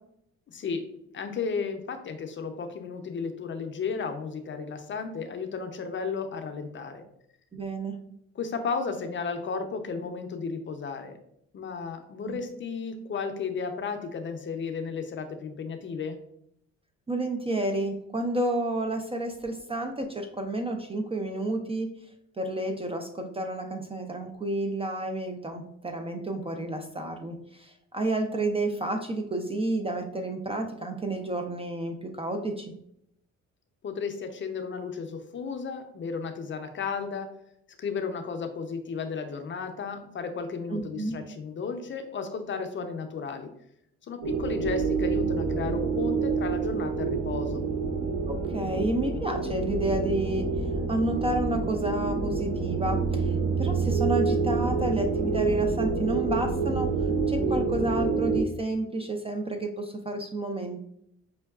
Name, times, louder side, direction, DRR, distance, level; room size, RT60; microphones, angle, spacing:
voice 1, 0.5-0.8 1.1-7.0 8.3-11.2 11.5-16.2 33.8-37.3 37.8-43.5 44.0-47.6, left 5 dB, 40° left, 6 dB, 0.5 m, -34 dB
voice 2, 7.5-8.0 12.2-12.4 17.1-21.9 22.4-32.7 40.7-41.1 48.3-50.5 50.9-56.9 57.3-60.8, right 2 dB, 20° right, 4 dB, 0.3 m, -30 dB
sound 1, 44.2-58.4, right 4 dB, 65° right, 0.8 m, -27 dB
5.3 x 2.2 x 2.3 m, 0.74 s
cardioid pair, 90°, 30 cm